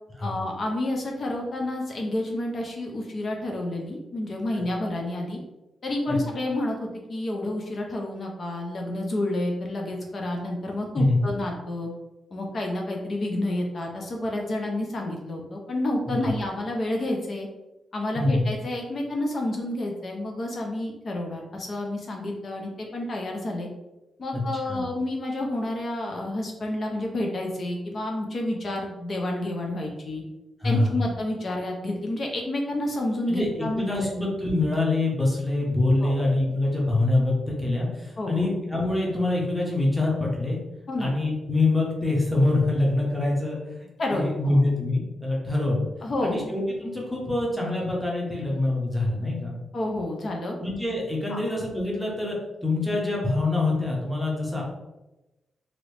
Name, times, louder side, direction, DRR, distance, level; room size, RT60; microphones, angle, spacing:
voice 1, 0.2-5.4 5.8-11.9 12.3-17.5 17.9-23.7 24.2-30.2 30.6-34.1 36.0-36.2 38.2-38.5 40.9-41.1 44.0-44.6 46.0-46.4 49.7-50.5 51.3-51.5, left 1 dB, 40° left, 0 dB, 0.5 m, -29 dB
voice 2, 33.8-40.6 41.0-43.6 44.1-45.9 46.2-49.6 50.6-52.4 52.6-54.6, left 2 dB, ahead, -4 dB, 0.9 m, -25 dB
2.9 x 2.6 x 3.2 m, 1.0 s
wide cardioid pair, 135°, 0 cm